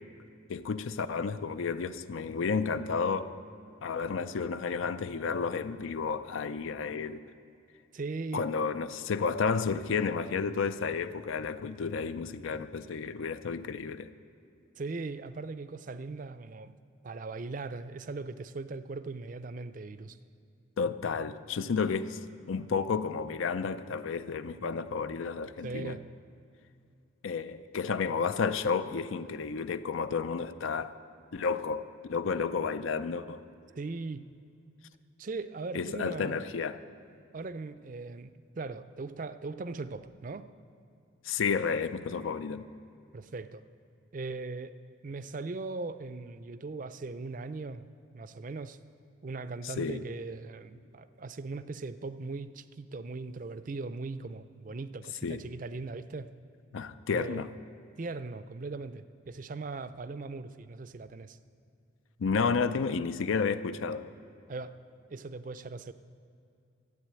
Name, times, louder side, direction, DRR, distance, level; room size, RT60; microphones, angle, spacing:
voice 1, 0.5-3.3 3.8-7.2 8.3-14.1 20.8-22.2 22.5-26.0 27.2-31.0 31.3-31.8 32.1-33.4 35.7-36.8 41.2-42.7 49.6-50.0 55.2-55.4 56.7-57.5 62.2-64.0, left 5 dB, 80° left, 12 dB, 0.5 m, -31 dB
voice 2, 7.9-8.4 14.8-16.7 17.0-20.2 25.6-26.1 33.7-34.2 35.2-36.4 37.3-40.5 43.1-43.6 44.1-44.8 45.0-47.9 48.1-48.8 49.2-56.3 57.1-57.5 58.0-61.4 64.5-64.7 65.1-65.9, right 3 dB, 40° right, 13 dB, 0.4 m, -39 dB
13.0 x 8.2 x 8.9 m, 2.6 s
head